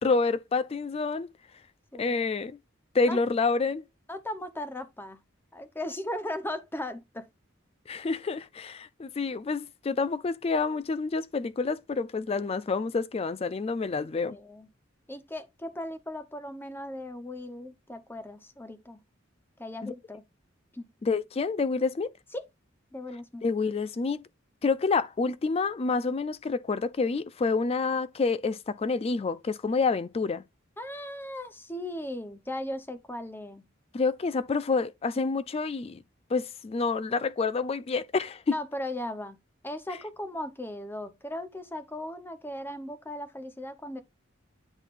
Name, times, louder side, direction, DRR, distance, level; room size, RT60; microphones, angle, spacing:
voice 1, 0.0-1.3 2.0-2.5 2.9-3.8 7.9-14.4 19.8-19.9 21.0-22.1 23.4-24.3 24.6-30.4 33.9-36.0 36.3-38.6, left 4 dB, 30° left, 0.4 m, -28 dB
voice 2, 1.9-2.3 3.0-3.2 4.1-5.2 5.5-7.3 14.0-14.7 15.1-19.0 19.6-20.2 20.7-20.9 22.3-22.5 22.9-23.4 30.8-33.6 38.5-39.4 39.6-44.0, left 1 dB, 10° left, 0.8 m, -37 dB
9.8 x 4.0 x 2.5 m
head